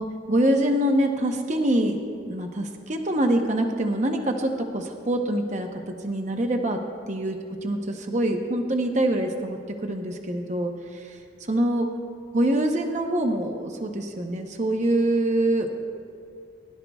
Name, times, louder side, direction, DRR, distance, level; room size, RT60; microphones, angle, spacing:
voice 1, 0.0-2.0 2.3-6.8 7.1-11.2 11.5-11.9 12.3-15.7, right 1 dB, 40° right, 3 dB, 0.8 m, -25 dB
21.0 x 11.5 x 2.3 m, 2.3 s
head